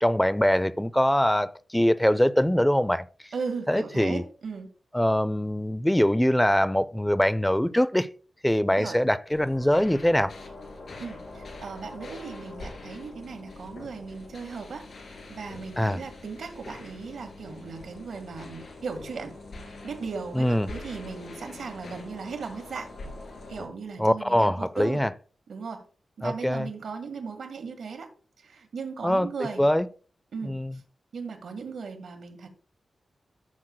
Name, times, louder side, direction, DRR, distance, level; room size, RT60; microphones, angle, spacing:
voice 1, 0.0-3.1 3.7-4.2 4.9-8.1 8.4-10.3 15.8-16.0 20.3-20.7 24.0-25.1 26.2-26.7 29.0-29.3 29.6-29.9 30.4-30.7, equal, 5° left, 0.4 m, -23 dB
voice 2, 3.3-4.7 8.7-9.0 11.0-14.8 15.3-22.9 23.5-25.0 25.5-25.9 26.2-28.1 28.4-29.6 30.3-30.8 31.1-32.5, right 5 dB, 85° right, 1.7 m, -37 dB
sound 1, 9.3-23.7, left 2 dB, 70° left, 2.8 m, -44 dB
13.5 x 6.2 x 2.2 m
wide cardioid pair, 135°, 0 cm